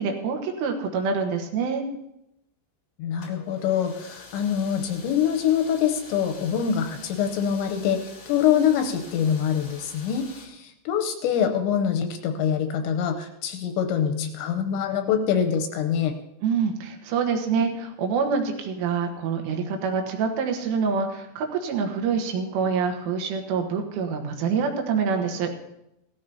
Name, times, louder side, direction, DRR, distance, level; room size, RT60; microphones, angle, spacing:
voice 1, 0.0-1.8 16.4-25.6, right 5 dB, 85° right, 3 dB, 3.8 m, -26 dB
voice 2, 3.0-16.1, left 8 dB, 80° left, 6 dB, 2.9 m, -25 dB
sound 1, 3.2-10.5, left 3 dB, 65° left, 1.3 m, -46 dB
17.0 x 13.5 x 2.8 m, 0.83 s
omnidirectional pair, 5.6 m